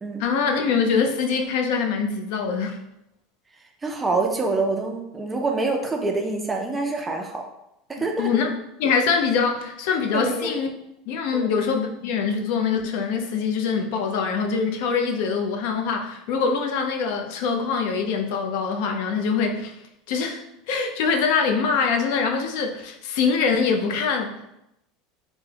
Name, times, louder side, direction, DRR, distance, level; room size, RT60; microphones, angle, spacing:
voice 1, 0.2-2.8 8.2-8.5 8.8-10.7 11.1-19.7 20.1-20.4 20.7-24.5, left 5 dB, 60° left, 4 dB, 0.4 m, -24 dB
voice 2, 3.8-7.5 7.9-8.4 10.1-10.5 11.3-11.5, right 3 dB, 10° right, 2 dB, 0.3 m, -26 dB
3.4 x 2.0 x 3.2 m, 0.84 s
cardioid pair, 175°, 0 cm